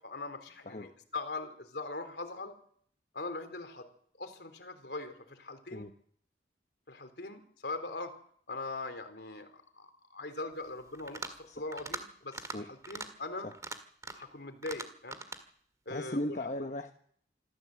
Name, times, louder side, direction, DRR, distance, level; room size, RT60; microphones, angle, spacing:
voice 1, 0.0-2.5 3.1-3.8 4.2-5.9 6.9-8.1 8.5-13.5 14.1-15.2 15.9-16.4, left 3 dB, 65° left, 7 dB, 3.4 m, -41 dB
sound 1, 10.9-11.4 11.7-12.0 12.3-12.6 12.8-13.1 13.5-14.3 14.6-15.4, right 3 dB, 20° right, 1.8 m, -41 dB
voice 2, 15.9-16.9, left 1 dB, 45° left, 5 dB, 1.1 m, -36 dB
26.5 x 14.5 x 7.7 m, 0.63 s
head